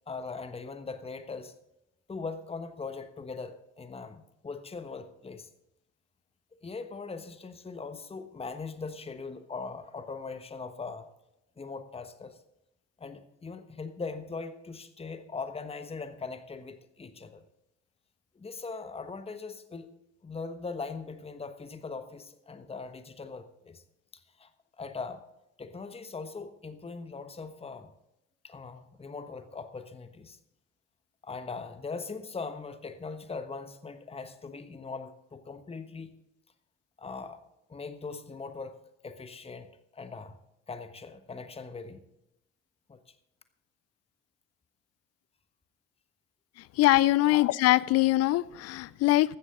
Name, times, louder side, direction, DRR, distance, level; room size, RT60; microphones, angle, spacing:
voice 1, 0.1-1.5 2.1-5.5 6.6-11.1 11.6-12.4 13.0-17.4 18.3-19.9 20.2-23.8 24.1-24.5 24.8-25.2 25.6-27.9 28.4-30.4 31.2-36.1 37.0-37.4 37.7-38.8 39.0-39.7 39.9-40.4 40.7-42.0 42.9-43.0, left 4 dB, 15° left, 10 dB, 1.2 m, -40 dB
voice 2, 46.8-49.4, left 17 dB, 45° left, 21 dB, 0.6 m, -23 dB
15.0 x 12.5 x 3.8 m, 0.88 s
figure-of-eight pair, 55°, 34 cm